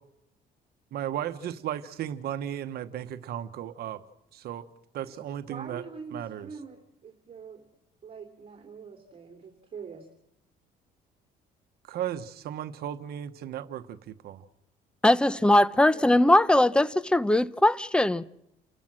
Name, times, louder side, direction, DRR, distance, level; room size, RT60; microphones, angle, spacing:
voice 1, 0.9-4.0 4.3-4.7 4.9-5.8 6.1-6.5 11.9-14.4, right 11 dB, 70° right, 1.1 m, -35 dB
voice 2, 5.0-7.6 8.0-10.1 15.9-16.2, right 5 dB, 35° right, 3.2 m, -44 dB
voice 3, 15.0-18.2, left 1 dB, 5° left, 0.7 m, -20 dB
29.5 x 14.0 x 7.5 m
cardioid pair, 110°, 17 cm